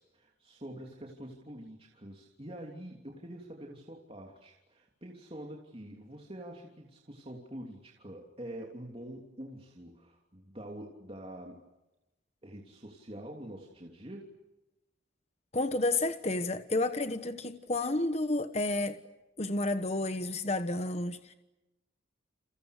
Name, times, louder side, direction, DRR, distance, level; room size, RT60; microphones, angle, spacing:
voice 1, 0.0-11.6 12.4-14.3, right 1 dB, 30° right, 0 dB, 3.2 m, -46 dB
voice 2, 15.5-19.0 19.4-21.3, left 2 dB, 35° left, 9 dB, 1.2 m, -31 dB
30.0 x 29.0 x 6.7 m, 0.98 s
head